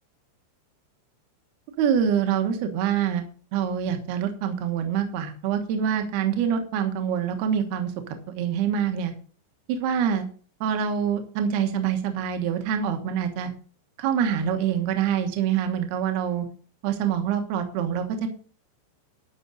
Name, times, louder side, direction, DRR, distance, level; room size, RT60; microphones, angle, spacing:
voice 1, 1.8-3.2 3.5-7.9 8.3-9.1 9.7-10.3 10.6-13.5 14.0-16.5 16.8-18.3, right 8 dB, 65° right, 6 dB, 3.0 m, -25 dB
12.5 x 6.0 x 6.4 m, 0.41 s
omnidirectional pair, 5.3 m